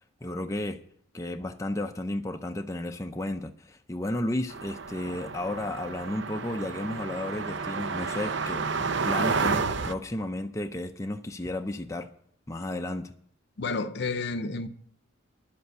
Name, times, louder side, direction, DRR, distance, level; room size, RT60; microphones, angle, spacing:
voice 1, 0.2-0.8 1.1-12.1 12.5-13.1, left 1 dB, 15° left, 0.5 m, -33 dB
sound 1, 4.5-9.9, right 4 dB, 60° right, 0.7 m, -31 dB
voice 2, 13.6-14.7, left 3 dB, 55° left, 0.7 m, -30 dB
11.5 x 7.9 x 8.0 m
head